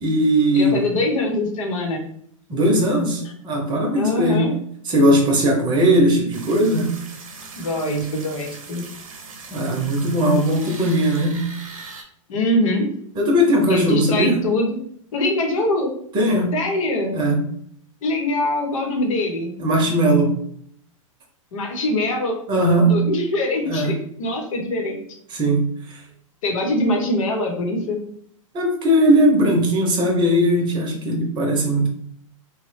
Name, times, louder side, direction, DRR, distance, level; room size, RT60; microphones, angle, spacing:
voice 1, 0.0-0.8 2.5-4.5 4.8-7.0 9.5-11.5 13.1-14.4 16.1-16.5 17.1-17.4 19.6-20.4 22.5-23.1 23.7-23.9 25.3-26.0 28.5-31.9, equal, 25° right, 1 dB, 0.7 m, -19 dB
voice 2, 0.5-2.0 3.9-4.5 7.6-8.8 12.3-12.9 13.7-14.7 15.1-15.9 16.5-17.1 18.0-19.5 21.5-22.3 22.9-25.0 26.4-28.0, left 1 dB, 70° left, 2 dB, 0.9 m, -23 dB
sound 1, 6.3-12.0, right 4 dB, 80° right, 0.7 m, -40 dB
3.1 x 2.2 x 3.2 m, 0.65 s
hypercardioid pair, 130°, 17 cm